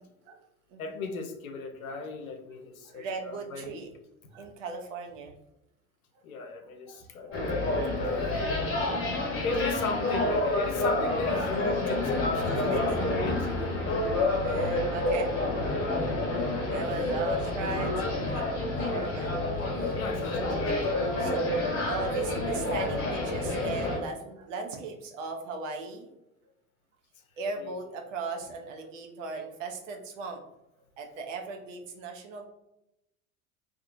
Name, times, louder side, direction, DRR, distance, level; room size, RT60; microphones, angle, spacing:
voice 1, 0.8-3.8 6.2-7.8 9.4-14.1 19.9-21.0 27.6-27.8, left 4 dB, 80° left, 5 dB, 0.6 m, -37 dB
voice 2, 2.8-3.9 4.3-5.3 6.9-7.4 8.8-9.1 12.4-13.0 14.4-15.3 15.9-16.0 16.3-18.4 18.8-20.0 21.2-21.5 21.8-26.1 27.4-30.4 31.0-32.5, right 4 dB, 65° right, 2 dB, 0.7 m, -37 dB
sound 1, 7.3-24.0, left 2 dB, 35° left, 1.1 m, -28 dB
2.7 x 2.4 x 2.5 m, 0.88 s
figure-of-eight pair, 70°, 42 cm